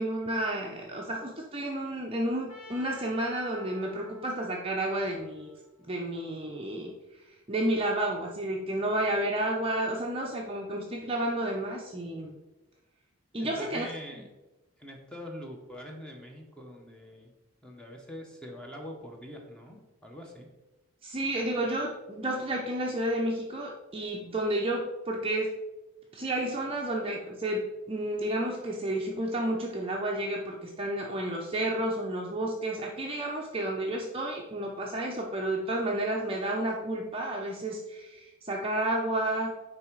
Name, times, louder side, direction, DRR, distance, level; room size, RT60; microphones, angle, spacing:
voice 1, 0.0-5.5 5.8-7.0 7.5-12.4 13.3-13.9 14.2-14.3 21.0-25.5 26.1-39.5, right 1 dB, 25° right, -1 dB, 0.7 m, -31 dB
Trumpet, 2.5-6.5, right 1 dB, 90° left, 1.9 m, -51 dB
voice 2, 13.4-14.3 14.8-17.3 17.6-20.5, equal, 5° left, 1 dB, 0.9 m, -44 dB
9.5 x 3.4 x 4.6 m, 1.1 s
head